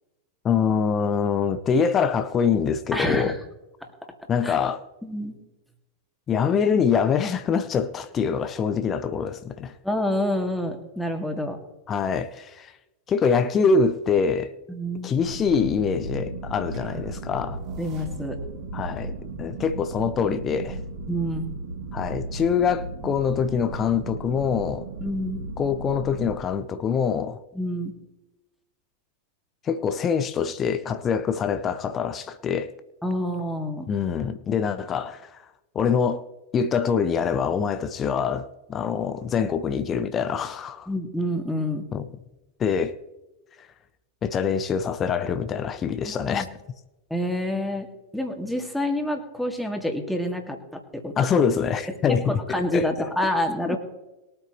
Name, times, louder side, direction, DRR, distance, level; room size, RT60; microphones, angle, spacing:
voice 1, 0.4-3.4 4.3-4.8 6.3-9.7 11.9-12.7 13.1-14.5 15.0-17.6 18.7-19.1 19.4-20.8 21.9-24.9 25.6-27.4 29.7-32.7 33.9-35.4 35.7-36.2 36.5-40.9 41.9-42.1 42.6-42.9 44.2-46.5 51.2-52.3 52.7-53.1 53.7-53.8, left 6 dB, 25° left, 0.8 m, -24 dB
voice 2, 2.9-3.4 3.8-3.9 4.4-4.6 5.0-5.4 9.8-11.6 14.7-15.1 16.9-17.0 17.8-18.4 21.1-21.5 25.0-25.4 27.5-27.9 33.0-33.9 40.9-41.8 46.1-46.5 47.1-51.2 52.1-53.8, left 1 dB, ahead, 2.3 m, -28 dB
sound 1, 15.2-26.4, right 2 dB, 55° right, 2.9 m, -35 dB
sound 2, 16.7-18.6, right 2 dB, 35° right, 3.4 m, -44 dB
22.0 x 9.0 x 3.2 m
figure-of-eight pair, 90°, 0 cm